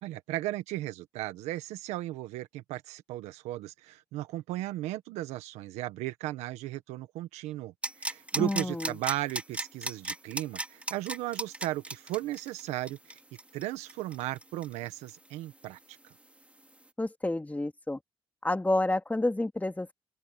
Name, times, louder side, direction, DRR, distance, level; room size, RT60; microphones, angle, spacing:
voice 1, 0.0-13.2 13.5-15.8, right 15 dB, 85° right, 1.5 m, -36 dB
sound 1, 7.8-15.3 15.6-15.7, right 1 dB, 10° right, 2.8 m, -36 dB
voice 2, 8.3-8.9 17.0-18.0 18.4-19.9, left 2 dB, 15° left, 2.5 m, -29 dB
open air
supercardioid pair, 60°, 11 cm